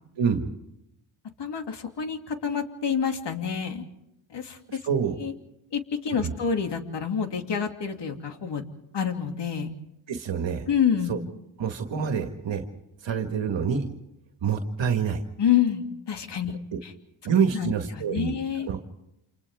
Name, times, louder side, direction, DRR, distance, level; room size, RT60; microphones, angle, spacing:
voice 1, 0.2-0.5 4.7-5.2 6.2-6.3 10.1-10.7 11.1-11.2 11.6-12.6 13.0-13.9 14.4-15.2 17.2-18.4 18.6-18.8, right 6 dB, 60° right, 5 dB, 1.9 m, -26 dB
voice 2, 1.4-3.8 4.3-4.8 5.2-5.3 5.7-8.6 8.9-9.7 10.7-11.1 15.4-16.6 16.8-16.9 17.5-18.7, left 8 dB, 55° left, 5 dB, 2.7 m, -28 dB
29.0 x 28.0 x 3.6 m, 0.86 s
cardioid pair, 85°, 49 cm